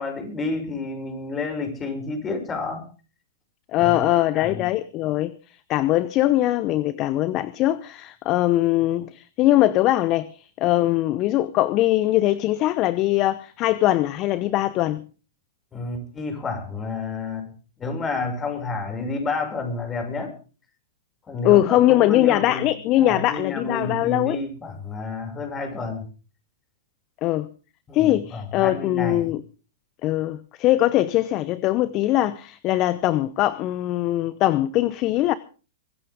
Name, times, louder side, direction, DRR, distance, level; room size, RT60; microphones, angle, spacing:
voice 1, 0.0-2.8 3.8-4.0 4.3-4.7 15.7-17.5 17.8-20.3 21.3-22.7 23.0-26.1 27.9-29.3, left 3 dB, 20° left, 6.2 m, -30 dB
voice 2, 3.7-5.3 5.7-15.0 21.4-24.4 27.2-27.5 27.9-29.4 30.0-35.3, left 15 dB, 40° left, 0.8 m, -21 dB
24.0 x 14.5 x 3.6 m
hypercardioid pair, 105°, 0 cm